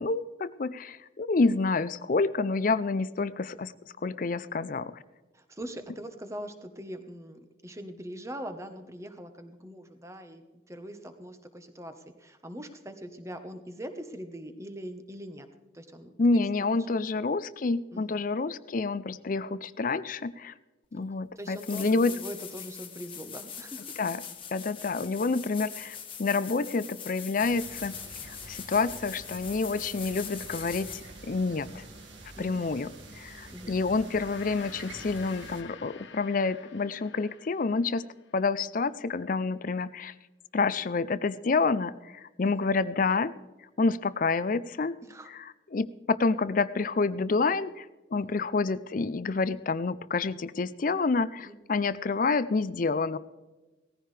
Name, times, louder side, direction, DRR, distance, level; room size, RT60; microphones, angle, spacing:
voice 1, 0.0-3.7 4.0-5.0 16.2-20.5 20.9-22.1 24.0-24.2 24.5-28.0 28.2-30.9 31.2-31.8 32.4-32.9 33.1-38.0 38.3-40.1 40.5-43.3 43.8-45.0 45.3-47.9 48.1-53.2, left 4 dB, 45° left, 16 dB, 0.5 m, -28 dB
voice 2, 5.3-15.5 15.7-16.4 16.9-17.0 17.9-18.2 20.9-24.0 32.3-32.8 33.5-33.7 42.4-42.5 45.0-45.3 48.1-48.4 51.5-51.6, equal, 15° right, 7 dB, 1.1 m, -42 dB
sound 1, 21.0-21.1 21.5-31.2 34.0-34.1, left 8 dB, 30° left, 1.6 m, -42 dB
sound 2, 27.4-35.6, right 2 dB, 75° right, 2.0 m, -47 dB
Gong, 33.9-38.5, left 6 dB, 75° left, 1.1 m, -49 dB
18.0 x 14.5 x 3.3 m, 1.2 s
head